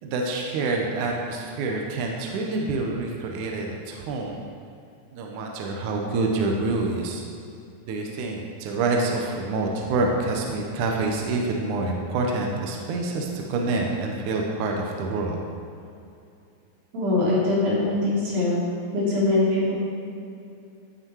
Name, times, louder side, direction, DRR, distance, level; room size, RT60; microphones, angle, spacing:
voice 1, 0.0-4.4 5.1-7.2 7.9-15.4, right 3 dB, 70° right, 0 dB, 2.3 m, -27 dB
voice 2, 16.9-18.6 18.9-19.7, left 2 dB, 90° right, -7 dB, 4.7 m, -22 dB
15.0 x 6.4 x 4.6 m, 2.5 s
omnidirectional pair, 4.1 m